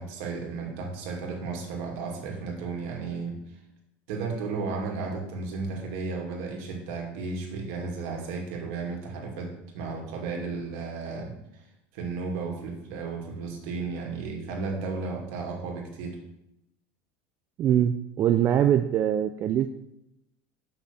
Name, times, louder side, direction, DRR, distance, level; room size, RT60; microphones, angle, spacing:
voice 1, 0.0-3.4 4.1-11.3 11.9-16.2, right 4 dB, 75° right, 1 dB, 2.4 m, -34 dB
voice 2, 17.6-19.7, right 10 dB, 35° right, 8 dB, 0.4 m, -23 dB
6.4 x 5.9 x 7.0 m, 0.85 s
supercardioid pair, 140°, 7 cm